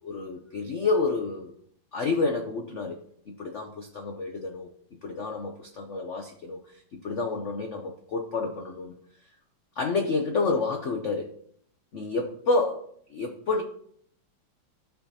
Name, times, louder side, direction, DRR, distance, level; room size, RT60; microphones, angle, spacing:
voice 1, 0.0-1.5 1.9-3.0 3.3-4.7 5.0-6.6 6.9-8.9 9.8-11.3 11.9-12.8 13.1-13.6, left 3 dB, 90° left, 4 dB, 0.6 m, -29 dB
12.5 x 5.6 x 2.8 m, 0.63 s
omnidirectional pair, 2.4 m